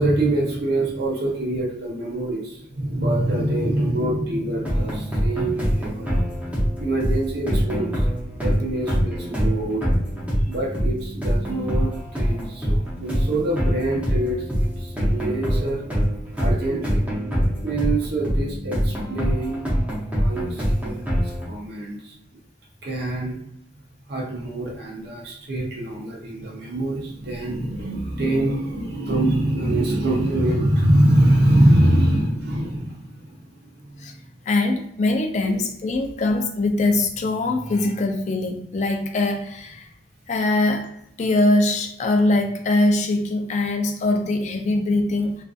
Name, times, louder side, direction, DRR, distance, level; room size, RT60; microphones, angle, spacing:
voice 1, 0.0-8.0 8.4-9.9 10.5-15.8 16.4-17.0 17.6-19.7 20.1-22.1 22.8-23.4 24.1-33.9, right 1 dB, 60° right, -3 dB, 0.6 m, -24 dB
sound 1, 4.7-21.5, equal, 10° right, 0.6 m, -24 dB
voice 2, 34.5-39.9 40.3-40.9 41.2-45.3, left 2 dB, 40° left, 4 dB, 0.4 m, -22 dB
2.5 x 2.4 x 2.3 m, 0.74 s
head